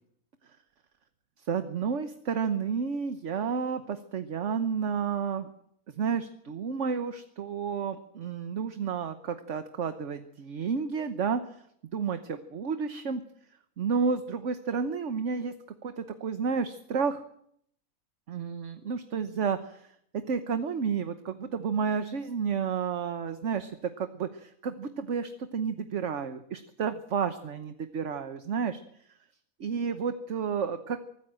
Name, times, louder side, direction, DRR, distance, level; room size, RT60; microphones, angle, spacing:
voice 1, 1.5-5.5 6.0-11.4 11.9-13.2 13.8-15.5 15.8-17.2 18.3-19.9 20.3-23.7 24.0-28.8 29.6-31.0, right 6 dB, 55° right, 9 dB, 1.3 m, -31 dB
24.0 x 14.0 x 7.7 m, 0.70 s
omnidirectional pair, 1.6 m